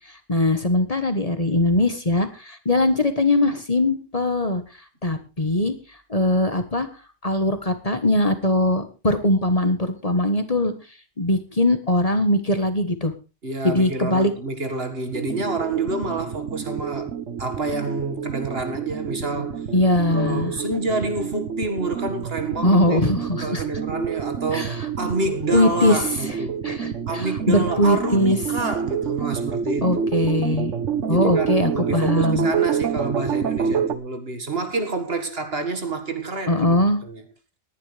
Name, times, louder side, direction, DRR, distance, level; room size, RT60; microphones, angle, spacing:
voice 1, 0.3-4.6 5.0-5.7 6.1-6.9 7.2-10.7 11.2-13.1 13.6-14.3 19.7-20.5 22.6-23.6 24.5-24.9 25.5-26.1 26.6-28.4 29.8-30.7 31.1-32.5 36.5-37.0, left 1 dB, 30° left, 1.4 m, -21 dB
voice 2, 13.4-17.1 17.4-19.7 20.1-26.6 27.1-30.2 31.1-37.2, right 3 dB, 55° right, 2.1 m, -28 dB
sound 1, 15.1-34.0, right 7 dB, 85° right, 1.4 m, -28 dB
19.0 x 11.0 x 3.4 m
omnidirectional pair, 1.2 m